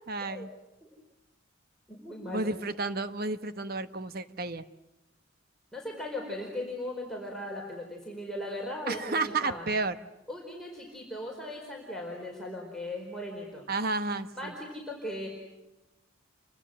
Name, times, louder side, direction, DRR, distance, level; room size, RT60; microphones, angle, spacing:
voice 1, 0.1-0.5 2.3-4.6 8.9-10.0 13.7-14.5, right 3 dB, 45° right, 11 dB, 1.1 m, -31 dB
voice 2, 1.9-2.5 5.7-9.7 10.3-13.7 14.3-15.3, left 1 dB, ahead, -1 dB, 4.6 m, -38 dB
29.5 x 25.0 x 7.7 m, 0.95 s
head